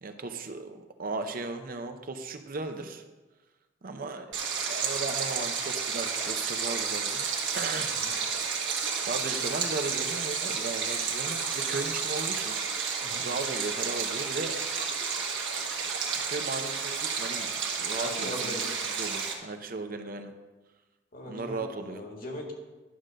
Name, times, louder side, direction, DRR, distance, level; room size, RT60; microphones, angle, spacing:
voice 1, 0.0-3.0 3.8-4.4 4.7-7.3 7.5-7.9 9.1-12.6 13.2-14.6 16.2-17.5 17.8-18.6 19.0-20.3 21.2-22.0, right 3 dB, 50° right, 6 dB, 0.7 m, -36 dB
Stream, 4.3-19.3, right 6 dB, 70° right, 1.5 m, -31 dB
voice 2, 17.9-18.8 21.1-22.5, left 1 dB, 50° left, 0 dB, 1.8 m, -40 dB
11.0 x 3.8 x 6.5 m, 1.2 s
head